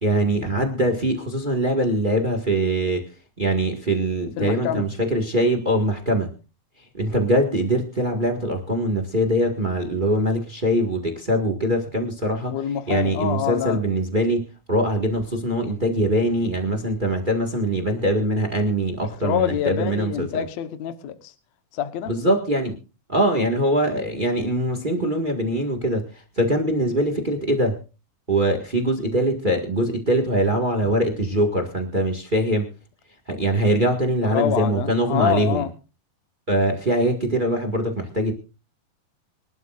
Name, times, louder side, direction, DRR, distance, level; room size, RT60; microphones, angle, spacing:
voice 1, 0.0-3.0 3.4-6.3 7.0-12.6 12.9-20.4 22.1-22.7 23.1-27.8 28.3-32.7 33.3-35.7 36.5-38.3, right 1 dB, 35° right, 0.7 m, -22 dB
voice 2, 4.4-4.9 12.5-13.8 19.2-21.3 21.7-22.1 34.2-35.7, left 10 dB, 65° left, 1.9 m, -26 dB
25.5 x 12.0 x 2.5 m
omnidirectional pair, 4.2 m